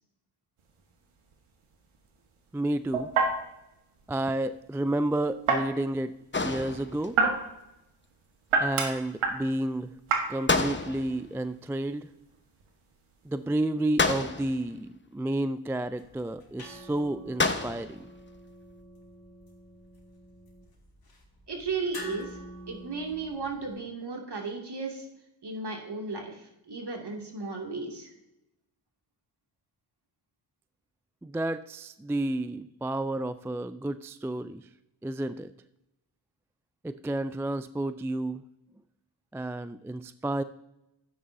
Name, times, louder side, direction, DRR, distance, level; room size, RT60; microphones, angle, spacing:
sound 1, 0.6-13.6, right 4 dB, 85° right, 1.5 m, -32 dB
voice 1, 2.5-3.1 4.1-6.2 6.4-7.2 8.6-9.9 10.3-12.1 13.3-18.1 31.2-34.6 35.0-35.5 36.8-38.4 39.3-40.4, right 1 dB, 5° right, 13 dB, 0.3 m, -31 dB
sound 2, 6.3-7.2 10.5-11.3 14.0-14.7 17.4-18.0, left 3 dB, 25° left, 1.0 m, -29 dB
sound 3, 15.8-23.8, left 1 dB, 45° left, 2.8 m, -48 dB
voice 2, 21.5-22.4 22.7-25.1 25.4-28.1, right 4 dB, 50° right, 1 dB, 2.5 m, -35 dB
12.0 x 9.3 x 2.7 m, 0.88 s
supercardioid pair, 45°, 49 cm